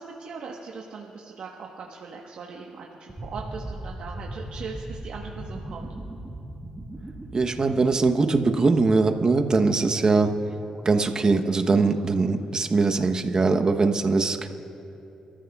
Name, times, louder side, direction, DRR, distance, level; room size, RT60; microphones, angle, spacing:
voice 1, 0.0-5.9 11.7-12.0, right 5 dB, 70° right, -1 dB, 1.2 m, -39 dB
sound 1, 3.1-12.0, right 1 dB, 10° right, 1.9 m, -40 dB
voice 2, 7.3-10.3 10.8-14.5, right 3 dB, 40° right, 5 dB, 0.9 m, -21 dB
28.5 x 14.0 x 2.4 m, 2.8 s
cardioid pair, 80°, 2 cm